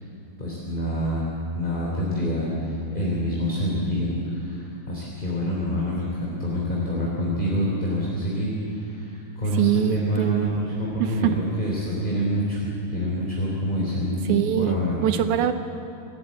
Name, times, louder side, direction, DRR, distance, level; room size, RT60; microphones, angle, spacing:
voice 1, 0.4-1.3 1.5-11.3 11.6-15.0, equal, 15° left, -4 dB, 3.3 m, -27 dB
voice 2, 9.5-10.5 11.0-11.4 14.3-15.5, right 12 dB, 80° right, 9 dB, 2.2 m, -23 dB
26.0 x 14.0 x 8.4 m, 2.8 s
omnidirectional pair, 3.5 m